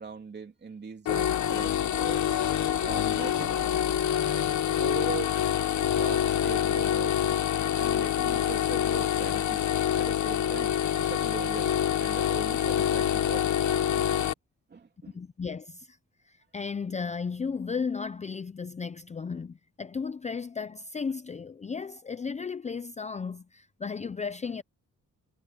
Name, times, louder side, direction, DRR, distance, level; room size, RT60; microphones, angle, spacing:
voice 1, 0.0-2.2 2.8-3.7 4.8-5.4 5.9-7.4 7.7-9.7 9.9-11.7 12.0-13.5 13.9-14.2 14.7-15.2, right 5 dB, 35° right, 3.1 m, -40 dB
sound 1, 1.1-14.3, left 10 dB, 70° left, 1.0 m, -26 dB
voice 2, 15.1-16.0 16.3-24.6, left 5 dB, 25° left, 0.5 m, -35 dB
cardioid pair, 130°, 30 cm